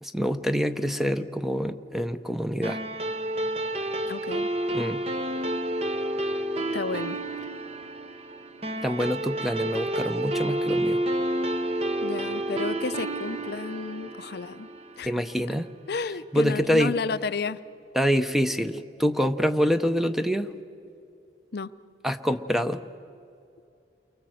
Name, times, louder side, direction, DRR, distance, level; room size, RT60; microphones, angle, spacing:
voice 1, 0.0-2.8 4.7-5.0 8.8-11.0 15.0-15.7 16.3-17.0 17.9-20.5 22.0-22.8, equal, ahead, 9 dB, 0.7 m, -26 dB
sound 1, 2.6-15.4, right 1 dB, 35° right, 1.1 m, -30 dB
voice 2, 4.1-4.5 6.7-7.2 12.0-14.7 15.0-15.1 15.9-17.6 21.5-21.7, left 4 dB, 60° left, 13 dB, 0.6 m, -32 dB
29.5 x 23.5 x 7.8 m, 2.5 s
head